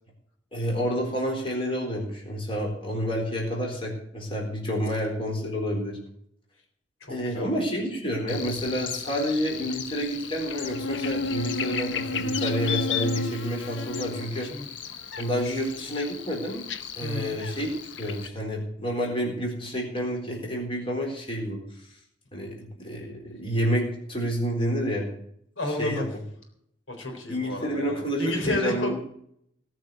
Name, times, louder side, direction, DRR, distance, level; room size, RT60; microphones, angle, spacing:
voice 1, 0.5-6.0 7.1-14.5 15.2-16.6 17.0-17.7 18.0-21.6 22.3-25.1 25.7-26.0 27.3-29.0, equal, 30° left, -1 dB, 4.1 m, -29 dB
voice 2, 7.0-7.6 14.4-14.7 15.4-15.6 17.0-17.3 25.6-26.1 26.9-29.0, left 1 dB, 85° left, 4 dB, 4.0 m, -31 dB
Buzz, 8.3-18.3, left 4 dB, 70° left, 1.0 m, -33 dB
18.5 x 6.4 x 7.8 m, 0.69 s
head